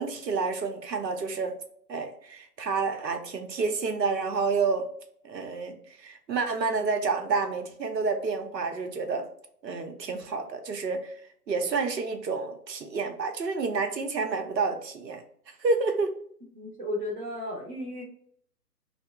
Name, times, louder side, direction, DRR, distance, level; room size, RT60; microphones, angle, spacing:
voice 1, 0.0-1.5 1.9-4.9 5.2-9.3 9.6-11.2 11.5-15.2 15.6-16.1, right 4 dB, 85° right, 5 dB, 0.8 m, -29 dB
voice 2, 16.5-18.0, left 1 dB, 30° right, -4 dB, 0.6 m, -34 dB
2.8 x 2.1 x 3.4 m, 0.64 s
hypercardioid pair, 145°, 48 cm